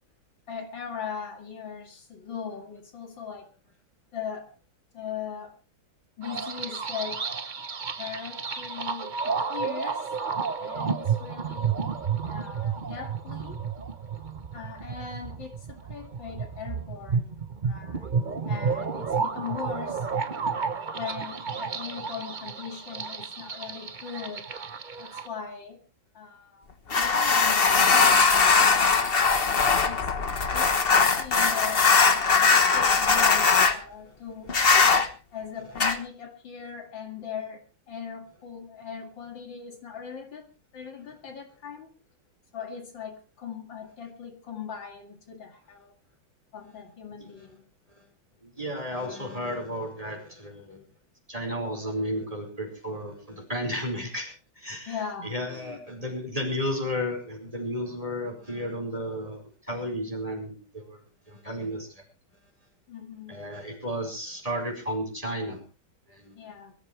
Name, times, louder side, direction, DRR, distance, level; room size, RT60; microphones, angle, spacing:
voice 1, 0.5-3.5 4.1-4.5 4.9-5.6 6.2-7.2 8.0-10.1 10.6-11.8 12.2-13.6 14.5-17.4 17.6-18.2 18.5-20.1 20.9-24.5 25.0-25.8 26.1-26.7 26.9-29.0 29.6-30.1 30.5-34.5 35.3-41.9 42.5-45.9 46.5-47.7 54.9-55.8 62.9-63.4 66.4-66.7, left 7 dB, 70° left, 4 dB, 2.9 m, -39 dB
sound 1, 6.2-25.3, right 5 dB, 40° right, 0.6 m, -31 dB
sound 2, 26.9-33.8 34.5-35.1 35.8-36.0, left 4 dB, 35° left, 1.2 m, -20 dB
voice 2, 48.4-50.8 51.3-54.9 55.2-61.0 61.3-61.9 63.3-65.6 66.1-66.4, equal, 15° right, 2 dB, 5.0 m, -33 dB
23.0 x 13.5 x 3.3 m, 0.32 s
omnidirectional pair, 2.1 m